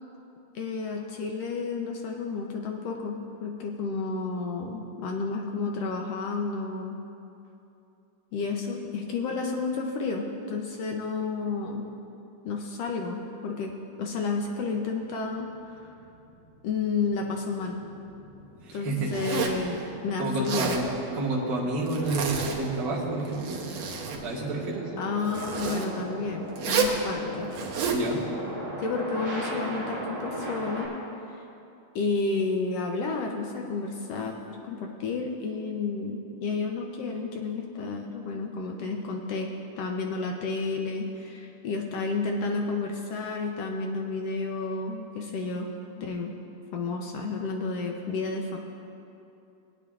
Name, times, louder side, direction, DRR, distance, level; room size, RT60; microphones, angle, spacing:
voice 1, 0.5-7.0 8.3-11.9 12.4-13.7 14.0-15.5 15.7-15.9 16.6-17.8 18.7-20.8 25.0-27.5 28.8-30.9 31.9-39.5 39.8-45.7 46.0-46.3 46.7-48.6, left 4 dB, 70° left, 1 dB, 1.6 m, -31 dB
sound 1, 14.8-30.9, right 1 dB, 20° right, 2.4 m, -40 dB
voice 2, 18.6-19.1 19.6-19.8 20.2-20.8 21.1-23.6 24.2-24.9 27.9-28.2, right 2 dB, 40° right, -5 dB, 1.5 m, -29 dB
Zipper (clothing), 19.1-19.7 20.3-20.8 21.9-22.6 23.2-24.2 25.3-25.9 26.6-27.0 27.5-28.0, right 5 dB, 65° right, 1.9 m, -30 dB
18.5 x 9.4 x 2.4 m, 2.8 s
omnidirectional pair, 3.3 m